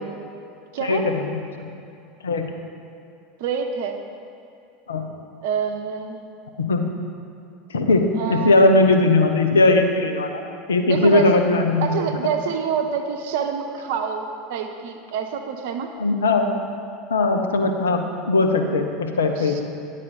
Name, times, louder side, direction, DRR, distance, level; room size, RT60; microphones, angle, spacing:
voice 1, 0.8-1.7 2.2-2.5 4.9-5.1 6.6-6.9 7.7-10.4 10.7-12.1 16.0-16.5 17.1-19.6, left 2 dB, 75° left, 4 dB, 0.7 m, -19 dB
voice 2, 3.4-4.0 5.4-6.3 8.2-8.7 10.9-11.4 11.8-15.9 19.4-19.6, right 7 dB, 60° right, 5 dB, 0.7 m, -27 dB
10.0 x 4.2 x 6.4 m, 2.6 s
figure-of-eight pair, 75°, 0 cm